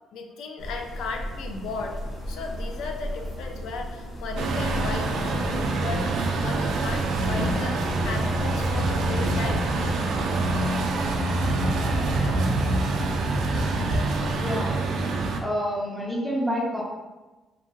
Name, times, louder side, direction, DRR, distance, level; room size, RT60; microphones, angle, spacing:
voice 1, 0.1-2.0 2.3-6.1 6.4-9.7, left 4 dB, 90° left, 3 dB, 0.3 m, -35 dB
sound 1, 0.6-14.6, equal, 45° left, 0.8 m, -37 dB
Truck, 4.4-15.4, right 2 dB, 65° right, 0.3 m, -25 dB
voice 2, 14.4-14.8 15.4-16.8, equal, 5° left, -4 dB, 0.6 m, -28 dB
2.8 x 2.6 x 2.5 m, 1.2 s
cardioid pair, 155°, 0 cm